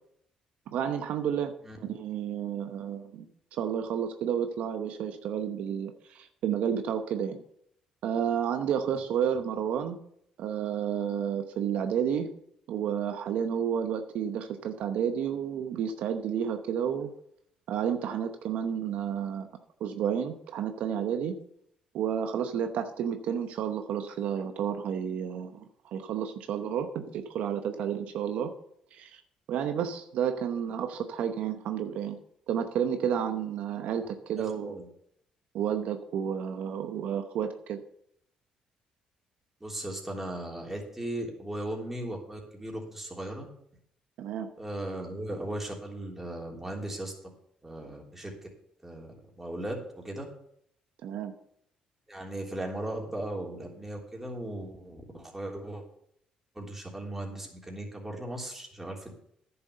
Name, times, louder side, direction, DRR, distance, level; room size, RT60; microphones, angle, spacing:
voice 1, 0.7-3.3 3.5-7.4 8.0-10.0 10.4-12.3 12.7-17.1 17.7-19.5 19.8-21.4 21.9-25.6 25.9-28.5 28.9-29.2 29.5-32.2 32.5-34.7 35.5-37.8 44.2-44.5 51.0-51.3, right 8 dB, 75° right, 7 dB, 0.9 m, -31 dB
voice 2, 34.4-34.9 39.6-43.5 44.6-47.1 47.6-48.3 48.8-50.3 52.1-55.8 56.5-59.1, right 1 dB, 10° right, -1 dB, 3.3 m, -37 dB
10.5 x 6.9 x 6.8 m, 0.70 s
cardioid pair, 95°, 2 cm